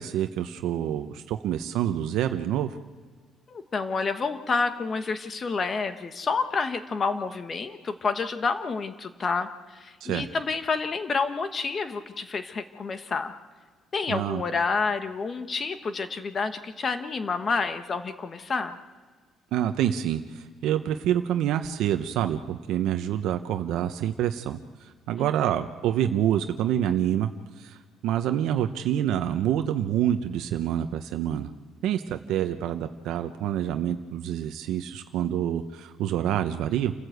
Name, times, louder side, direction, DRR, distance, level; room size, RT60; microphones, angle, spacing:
voice 1, 0.0-2.7 10.0-10.2 14.1-14.4 19.5-27.3 27.6-31.5 31.8-36.9, right 10 dB, 80° right, 7 dB, 0.9 m, -27 dB
voice 2, 3.5-13.3 13.9-18.8 25.2-25.3, left 4 dB, 35° left, 9 dB, 1.4 m, -29 dB
28.0 x 15.0 x 8.0 m, 1.5 s
cardioid pair, 125°, 0 cm